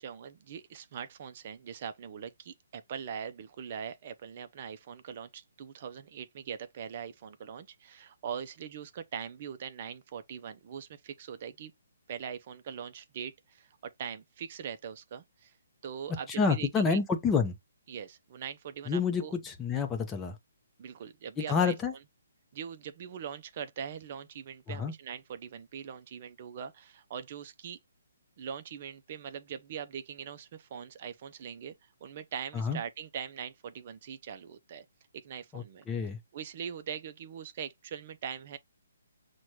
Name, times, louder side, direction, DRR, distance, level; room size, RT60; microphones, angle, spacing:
voice 1, 0.0-11.7 12.1-15.5 15.8-17.0 17.9-19.3 20.8-21.7 22.5-27.8 28.4-34.8 35.1-35.9 36.3-38.6, right 8 dB, 45° right, 0.5 m, -41 dB
voice 2, 16.4-17.5 18.9-20.4 21.4-21.9 24.7-24.9 32.5-32.8 35.5-36.2, left 5 dB, 15° left, 0.6 m, -28 dB
6.1 x 2.2 x 2.9 m
hypercardioid pair, 145°, 0 cm